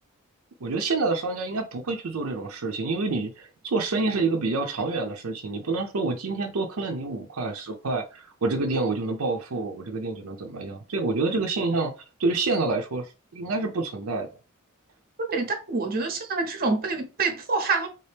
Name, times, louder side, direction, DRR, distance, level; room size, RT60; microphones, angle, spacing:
voice 1, 0.6-11.9 12.2-14.3, right 3 dB, 80° right, 0.6 m, -28 dB
voice 2, 15.3-17.9, right 3 dB, 45° right, 0.8 m, -26 dB
3.6 x 2.8 x 3.4 m
head